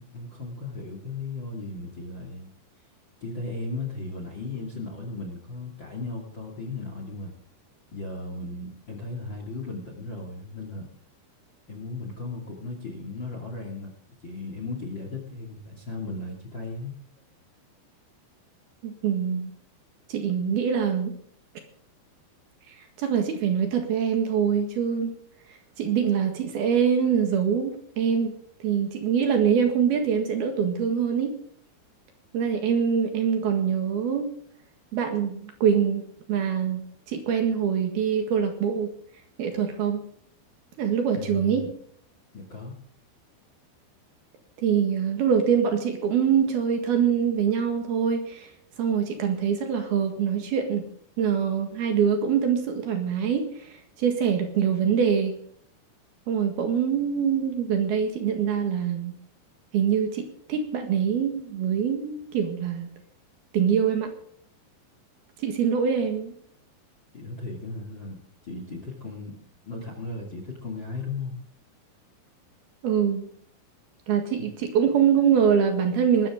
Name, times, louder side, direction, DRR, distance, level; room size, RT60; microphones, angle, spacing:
voice 1, 0.0-2.5 3.2-7.3 7.9-10.9 11.7-13.9 14.2-16.9 41.1-41.7 42.3-42.7 67.1-71.4, left 3 dB, 35° left, 3 dB, 2.2 m, -36 dB
voice 2, 18.8-19.5 20.1-21.1 23.0-25.1 25.8-28.3 28.6-31.4 32.3-34.3 34.9-36.0 36.3-38.9 39.4-40.0 40.8-41.7 44.6-48.5 48.8-50.9 51.2-55.4 56.3-59.2 59.7-62.9 63.5-64.1 65.4-66.3 72.8-73.3 74.1-76.3, right 7 dB, 60° right, 5 dB, 3.4 m, -24 dB
20.0 x 13.5 x 3.7 m, 0.62 s
omnidirectional pair, 5.4 m